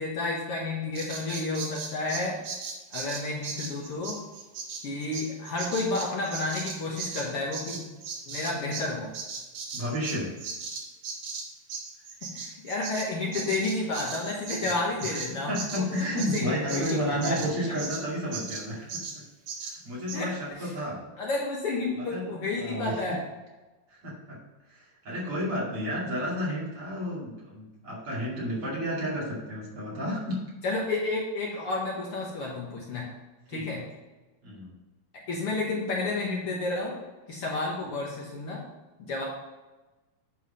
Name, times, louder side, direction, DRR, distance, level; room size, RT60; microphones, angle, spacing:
voice 1, 0.0-2.4 2.9-4.2 4.8-7.8 8.3-9.1 12.2-17.4 20.1-20.3 20.6-20.7 21.2-23.2 30.6-33.1 33.5-33.8 35.3-36.9 37.3-38.6 39.0-39.2, left 2 dB, 55° left, -3 dB, 1.9 m, -31 dB
Bird vocalization bird call bird song, 1.0-8.9 9.1-18.0 18.3-18.6 18.9-19.2 19.5-19.8 20.1-20.2, right 5 dB, 70° right, 2.5 m, -37 dB
voice 2, 9.7-10.3 14.6-14.7 15.0-19.0 19.6-21.0 21.9-23.2 23.9-24.4 24.7-30.4 33.5-33.7 34.4-34.7, equal, 50° right, -6 dB, 3.2 m, -32 dB
9.4 x 4.6 x 5.5 m, 1.1 s
omnidirectional pair, 3.4 m